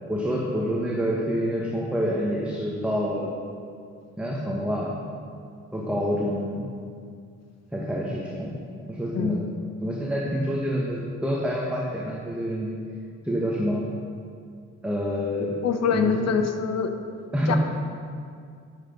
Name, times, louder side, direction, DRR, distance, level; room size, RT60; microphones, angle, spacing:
voice 1, 0.1-3.3 4.2-5.0 5.7-6.7 7.7-8.6 8.9-9.4 9.8-12.8 13.2-13.8 14.8-15.5 15.9-16.4 17.3-17.6, equal, 5° right, -4 dB, 1.4 m, -27 dB
voice 2, 9.1-9.5 15.6-16.9 17.5-17.6, left 6 dB, 60° left, 7 dB, 1.0 m, -24 dB
10.0 x 7.4 x 5.3 m, 2.3 s
cardioid pair, 90°, 30 cm